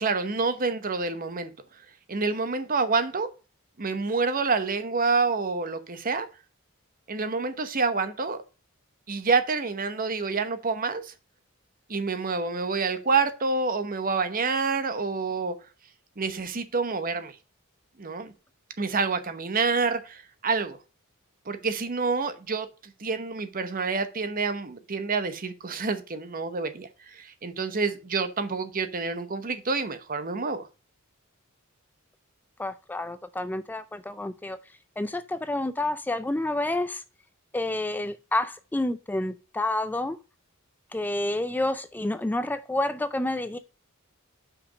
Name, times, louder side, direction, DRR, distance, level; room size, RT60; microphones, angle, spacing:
voice 1, 0.0-1.5 2.1-3.3 3.8-6.3 7.1-8.4 9.1-11.1 11.9-15.5 16.2-17.3 18.0-18.3 18.8-20.8 21.5-22.7 23.0-30.7, right 4 dB, 40° right, 0.9 m, -27 dB
voice 2, 32.6-34.6 35.0-37.0 37.5-40.2 40.9-43.6, left 2 dB, 10° left, 0.3 m, -29 dB
5.9 x 5.0 x 6.2 m
head